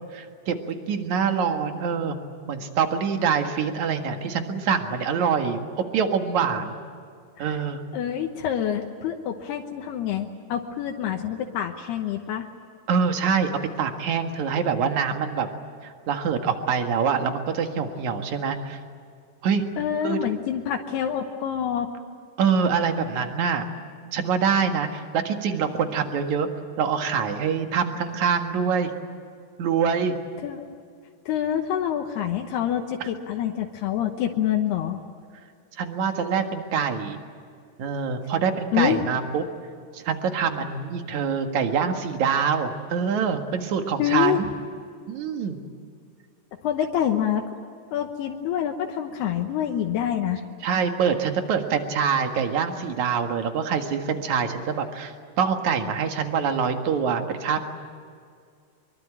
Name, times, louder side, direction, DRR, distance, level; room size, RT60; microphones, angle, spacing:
voice 1, 0.1-5.6 5.9-6.8 7.4-7.8 12.9-13.5 13.8-15.5 15.8-18.8 19.4-19.6 20.0-20.2 22.4-23.6 24.1-26.5 26.8-28.9 29.6-30.1 35.8-37.2 37.8-39.4 39.9-44.5 45.1-45.6 50.6-57.6, right 6 dB, 55° right, 5 dB, 2.7 m, -25 dB
voice 2, 7.9-12.5 19.8-21.9 30.4-30.6 31.3-35.0 38.7-39.0 44.0-44.4 46.6-47.4 47.9-50.4, left 10 dB, 80° left, 3 dB, 3.1 m, -26 dB
24.0 x 23.5 x 9.0 m, 2.2 s
omnidirectional pair, 4.7 m